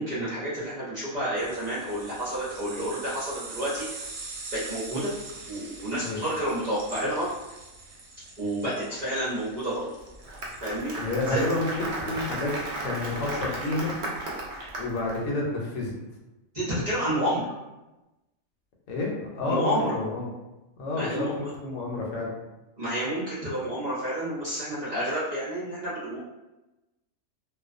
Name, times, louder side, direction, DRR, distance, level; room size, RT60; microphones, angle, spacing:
voice 1, 0.0-4.0 4.5-5.1 5.5-7.3 8.4-9.9 10.6-11.4 16.5-17.5 19.5-19.9 20.9-21.3 22.8-26.2, right 1 dB, 45° right, -11 dB, 0.6 m, -30 dB
sound 1, 1.4-13.3, right 3 dB, 75° right, 0.9 m, -44 dB
Applause, 10.0-15.2, right 2 dB, 90° right, 0.4 m, -34 dB
voice 2, 11.0-11.7 12.0-12.5 12.8-13.9 14.8-15.9 18.9-20.3 20.8-22.3, left 2 dB, 75° left, -2 dB, 1.0 m, -29 dB
2.3 x 2.2 x 2.4 m, 1.0 s
omnidirectional pair, 1.4 m